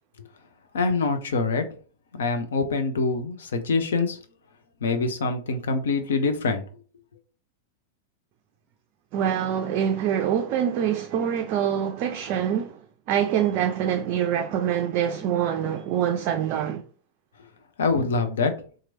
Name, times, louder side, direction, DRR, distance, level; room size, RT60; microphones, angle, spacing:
voice 1, 0.7-1.6 2.1-4.2 4.8-6.6 17.8-18.5, left 4 dB, 65° left, 0.6 m, -24 dB
voice 2, 9.1-12.8 13.1-16.8, right 9 dB, 40° right, 0.3 m, -25 dB
3.0 x 2.5 x 3.9 m
figure-of-eight pair, 90°, 0 cm